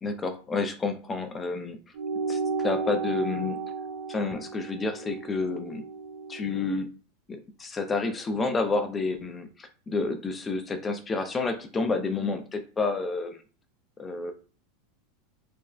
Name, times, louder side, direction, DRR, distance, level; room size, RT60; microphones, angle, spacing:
voice 1, 0.0-1.8 2.3-3.6 4.1-5.9 6.3-6.9 7.3-13.4 14.0-14.3, left 3 dB, 20° left, 8 dB, 0.4 m, -30 dB
sound 1, 1.9-6.8, right 4 dB, 70° right, 0.6 m, -33 dB
3.4 x 2.1 x 2.4 m, 0.37 s
supercardioid pair, 115°, 0 cm